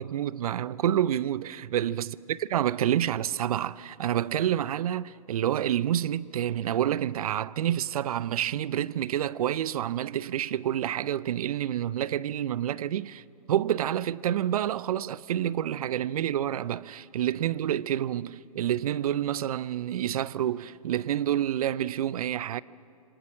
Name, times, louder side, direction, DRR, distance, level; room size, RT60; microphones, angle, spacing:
voice 1, 0.0-13.2 13.5-22.6, right 11 dB, 70° right, 0.6 m, -28 dB
27.0 x 25.0 x 6.3 m
hypercardioid pair, 115°, 20 cm